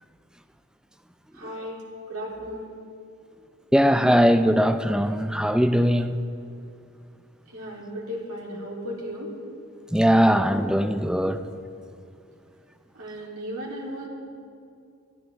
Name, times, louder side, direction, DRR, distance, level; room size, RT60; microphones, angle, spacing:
voice 1, 1.3-1.8 2.1-2.7 7.5-9.3 12.9-14.1, equal, 80° right, 3.4 m, -35 dB
voice 2, 3.7-6.2 9.9-11.4, equal, 5° right, 0.5 m, -20 dB
22.0 x 14.0 x 3.5 m
head